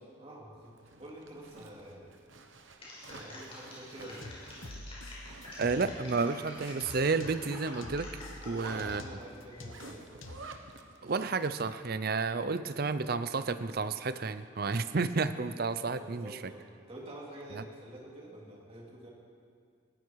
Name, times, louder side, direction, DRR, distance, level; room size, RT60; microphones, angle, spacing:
voice 1, 0.2-2.2 3.0-4.5 8.5-10.2 15.9-19.1, right 1 dB, 30° right, -3 dB, 2.9 m, -48 dB
Zipper (clothing), 0.6-11.8, right 3 dB, 75° right, 1.2 m, -52 dB
sound 1, 2.8-9.0 9.5-9.9, left 2 dB, 30° left, 5.2 m, -48 dB
sound 2, 4.2-6.2 6.6-10.6, left 2 dB, 85° left, 1.1 m, -47 dB
voice 2, 5.6-8.1 8.4-9.0 11.0-16.4 17.6-17.7, right 4 dB, 50° right, 12 dB, 0.6 m, -31 dB
19.5 x 15.0 x 4.7 m, 2.2 s
head